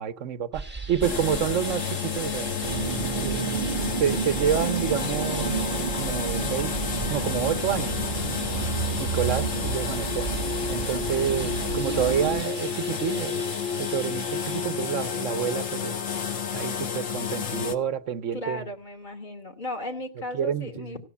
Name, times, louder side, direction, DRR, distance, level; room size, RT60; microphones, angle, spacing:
voice 1, 0.0-2.6 3.2-3.6 4.0-5.5 5.9-6.7 7.1-8.0 9.0-10.4 10.7-13.4 13.8-16.0 16.5-18.7 20.3-21.0, right 8 dB, 75° right, 1.2 m, -28 dB
sound 1, 0.5-14.6, right 2 dB, 10° right, 1.4 m, -43 dB
sound 2, 1.0-17.7, left 6 dB, 80° left, 1.6 m, -30 dB
sound 3, 2.6-12.4, right 6 dB, 45° right, 0.9 m, -31 dB
voice 2, 18.3-21.0, left 1 dB, 35° left, 2.8 m, -35 dB
16.5 x 8.0 x 8.3 m
omnidirectional pair, 1.3 m